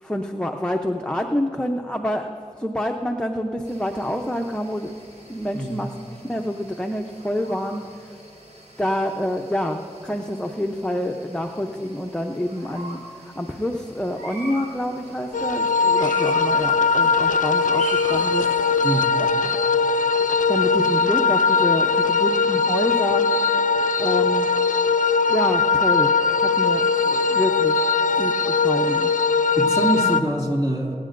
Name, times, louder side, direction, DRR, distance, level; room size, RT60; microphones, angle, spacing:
voice 1, 0.0-2.3 2.6-5.0 5.3-5.9 6.3-7.8 8.8-18.5 19.2-19.6 20.5-23.2 24.0-24.5 25.3-26.1 26.4-27.8 28.2-29.1, left 1 dB, 5° left, 2 dB, 0.6 m, -27 dB
sound 1, 3.6-18.8, right 1 dB, 55° right, 2.7 m, -42 dB
voice 2, 5.5-5.8 18.8-19.1 29.5-30.9, right 1 dB, 35° right, -2 dB, 2.3 m, -24 dB
sound 2, 15.3-30.2, left 4 dB, 85° left, 0.4 m, -20 dB
24.5 x 9.3 x 2.6 m, 2.7 s
wide cardioid pair, 55°, 13 cm